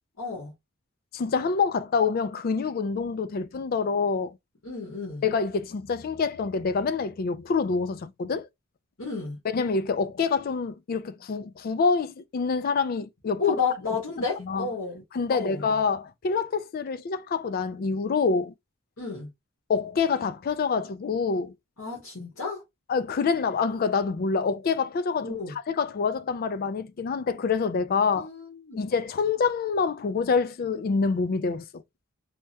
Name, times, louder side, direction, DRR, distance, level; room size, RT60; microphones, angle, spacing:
voice 1, 0.2-0.5 4.6-5.2 9.0-9.4 13.4-15.0 15.3-15.6 19.0-19.3 21.8-22.6 25.2-25.6 28.2-28.8, left 5 dB, 70° left, 1.2 m, -31 dB
voice 2, 1.1-4.3 5.2-8.5 9.5-13.6 14.4-14.7 15.1-18.5 19.7-21.5 22.9-25.4 25.7-28.3 28.8-31.7, left 5 dB, 45° left, 0.3 m, -26 dB
3.4 x 2.1 x 2.7 m
head